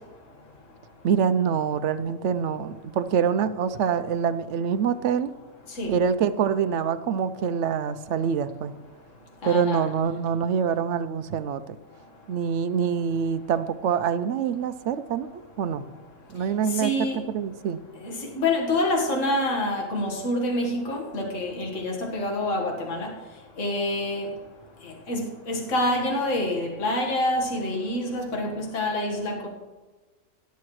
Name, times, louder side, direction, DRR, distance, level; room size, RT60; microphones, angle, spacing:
voice 1, 1.0-5.3 5.9-8.7 9.5-11.8 12.3-15.9 16.3-17.8, right 7 dB, 65° right, 13 dB, 0.8 m, -25 dB
voice 2, 9.4-9.9 16.7-17.2 18.0-23.1 23.6-24.3 24.8-29.5, left 1 dB, 60° left, -1 dB, 2.0 m, -27 dB
17.0 x 10.5 x 3.2 m, 1.2 s
omnidirectional pair, 1.5 m